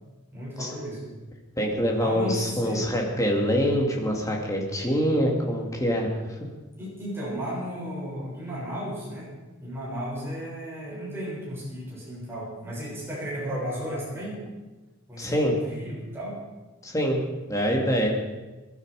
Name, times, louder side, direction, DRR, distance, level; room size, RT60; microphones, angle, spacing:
voice 1, 0.3-1.0 2.0-2.8 6.8-9.3 9.6-14.4 15.1-16.4, equal, 10° right, -7 dB, 6.8 m, -34 dB
voice 2, 1.6-6.1 15.2-15.5 16.8-17.2 17.5-18.1, equal, 15° left, 0 dB, 2.5 m, -25 dB
21.5 x 11.5 x 5.0 m, 1.2 s
head